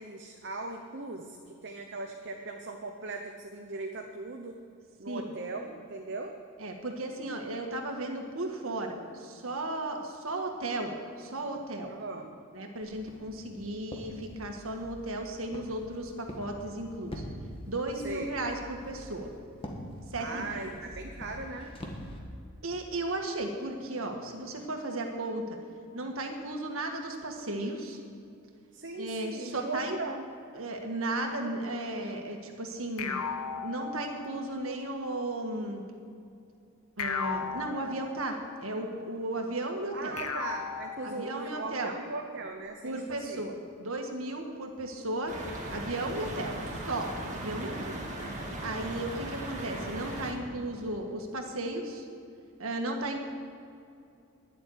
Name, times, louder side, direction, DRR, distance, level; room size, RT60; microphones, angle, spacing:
voice 1, 0.0-4.5 5.0-6.3 11.9-12.3 18.0-18.3 20.2-21.7 28.7-30.3 39.9-43.5 46.3-46.7 47.6-48.1, right 3 dB, 50° right, 3 dB, 0.9 m, -39 dB
voice 2, 6.6-11.9 12.5-17.2 17.7-19.3 20.1-20.7 22.6-25.6 25.9-28.0 28.9-30.0 30.5-33.3 33.6-35.8 37.0-40.2 41.0-41.9 42.8-45.4 45.7-47.9 48.6-52.1 52.6-53.2, right 2 dB, 70° right, 3 dB, 1.7 m, -35 dB
Walk footsteps, 12.8-22.2, equal, 25° left, 1.5 m, -45 dB
sound 1, 33.0-34.6 37.0-38.6 40.2-41.7, left 6 dB, 85° left, 1.1 m, -36 dB
sound 2, 45.3-50.3, right 1 dB, 35° right, 1.9 m, -38 dB
11.0 x 7.7 x 9.9 m, 2.5 s
head